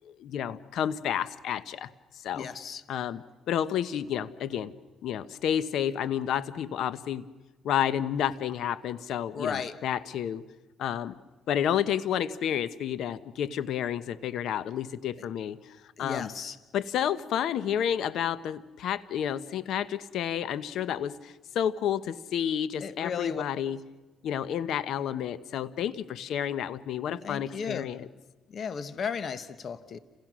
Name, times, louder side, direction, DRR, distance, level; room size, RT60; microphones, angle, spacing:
voice 1, 0.0-1.9 2.2-2.5 2.9-4.7 5.0-7.2 7.6-10.4 10.8-11.1 11.5-15.6 16.0-16.3 16.7-23.8 24.2-28.1, left 9 dB, 80° left, 15 dB, 1.1 m, -30 dB
voice 2, 2.3-2.8 9.3-9.8 16.0-16.6 22.8-23.4 27.2-27.9 28.5-30.0, left 6 dB, 55° left, 12 dB, 1.3 m, -34 dB
29.5 x 27.5 x 6.3 m, 1.2 s
cardioid pair, 90°, 0 cm